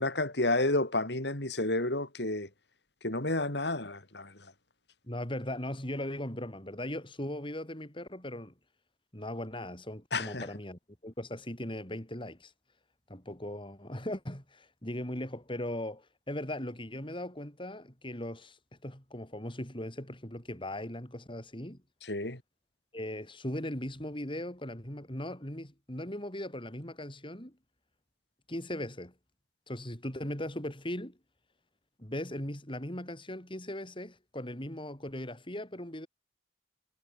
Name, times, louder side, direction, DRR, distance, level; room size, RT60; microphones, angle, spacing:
voice 1, 0.0-2.5 3.0-4.3 10.1-10.5 22.1-22.4, left 2 dB, 65° left, 4.7 m, -30 dB
voice 2, 5.1-8.5 9.1-12.5 13.1-18.6 18.8-21.8 22.9-27.6 28.5-29.1 29.7-31.2 32.0-36.1, left 1 dB, 30° left, 6.9 m, -38 dB
head